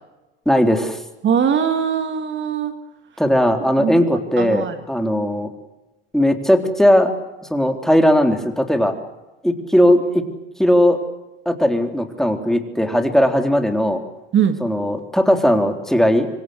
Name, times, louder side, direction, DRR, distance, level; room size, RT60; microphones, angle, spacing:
voice 1, 0.5-1.0 3.2-5.5 6.1-7.1 7.5-9.0 9.4-10.2 10.6-11.0 11.5-14.0 14.6-16.3, equal, ahead, 5 dB, 3.8 m, -17 dB
voice 2, 1.2-2.7 3.8-4.0 4.4-4.7 14.3-14.6, right 7 dB, 40° right, 7 dB, 2.6 m, -20 dB
26.5 x 25.0 x 7.9 m, 1.0 s
hypercardioid pair, 90°, 30 cm